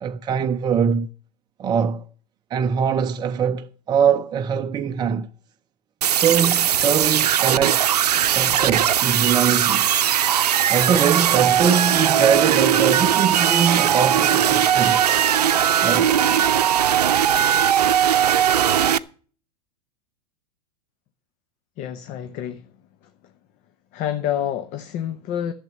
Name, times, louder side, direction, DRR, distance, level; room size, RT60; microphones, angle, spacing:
voice 1, 0.0-1.1 1.6-2.0 2.5-5.3 6.1-9.9 10.7-15.1 15.8-16.2, right 7 dB, 20° right, 0.6 m, -22 dB
sound 1, 6.0-19.0, right 10 dB, 75° right, 0.6 m, -19 dB
voice 2, 21.8-22.7 23.0-23.1 23.9-25.5, left 10 dB, 40° left, 0.9 m, -28 dB
12.0 x 7.3 x 6.4 m
hypercardioid pair, 100°, 20 cm